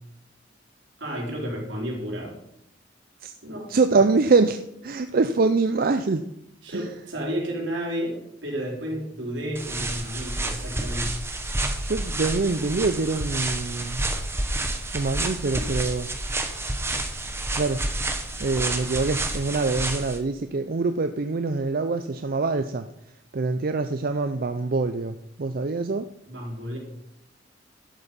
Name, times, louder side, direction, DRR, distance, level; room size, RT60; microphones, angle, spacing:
voice 1, 1.0-2.3 3.4-3.7 6.6-11.2 26.3-26.8, equal, 80° right, -1 dB, 3.8 m, -31 dB
voice 2, 3.7-6.2 6.7-6.9 11.8-14.0 14.9-16.1 17.6-17.8 18.4-22.9 23.3-26.1, right 3 dB, 50° right, 9 dB, 0.5 m, -24 dB
sound 1, 9.5-20.2, right 2 dB, 15° right, 1.1 m, -29 dB
11.5 x 8.5 x 5.3 m, 0.80 s
head